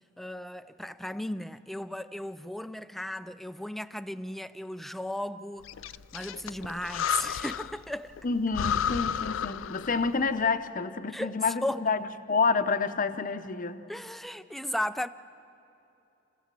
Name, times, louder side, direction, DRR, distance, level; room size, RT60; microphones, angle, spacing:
voice 1, 0.2-5.7 6.1-8.1 11.1-11.3 11.6-11.8 13.9-15.1, left 1 dB, ahead, 0.4 m, -35 dB
Breathing, 5.7-7.8 8.2-8.3 8.5-10.2, left 8 dB, 85° left, 0.4 m, -32 dB
voice 2, 8.2-12.0 12.3-13.8, left 4 dB, 45° left, 0.8 m, -28 dB
27.0 x 16.0 x 7.5 m
head